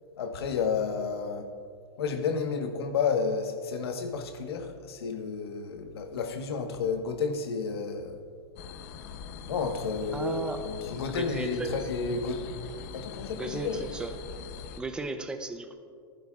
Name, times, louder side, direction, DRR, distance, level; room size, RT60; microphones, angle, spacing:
voice 1, 0.2-1.5 2.0-8.2 9.5-12.5 12.9-13.8, left 5 dB, 85° left, 5 dB, 1.4 m, -31 dB
sound 1, 8.6-14.8, left 6 dB, 40° left, 0.7 m, -42 dB
voice 2, 10.1-10.6 11.1-11.8 13.4-14.1 14.8-15.7, right 2 dB, 5° right, 7 dB, 0.6 m, -35 dB
26.0 x 11.0 x 2.4 m, 2.3 s
supercardioid pair, 165°, 13 cm